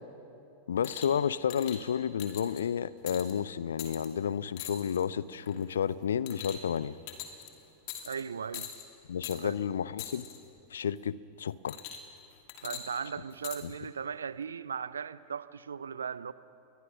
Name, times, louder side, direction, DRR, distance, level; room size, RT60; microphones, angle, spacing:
voice 1, 0.7-7.0 9.1-10.3 10.7-11.8, left 8 dB, 65° left, 0.6 m, -31 dB
sound 1, 0.8-1.2 1.5-1.8 2.2-2.6 3.1-3.3 3.8-4.1 4.6-5.0 5.5-5.7 6.3-6.8 7.1-7.5 7.9-8.2 8.5-8.9 9.2-9.4 10.0-10.4 11.7-12.2 12.5-13.6 14.4-14.5, left 10 dB, 45° left, 2.7 m, -42 dB
voice 2, 8.0-8.7 9.4-9.6 12.6-16.3, right 6 dB, 70° right, 0.6 m, -37 dB
29.0 x 22.0 x 6.3 m
figure-of-eight pair, 90°, 0 cm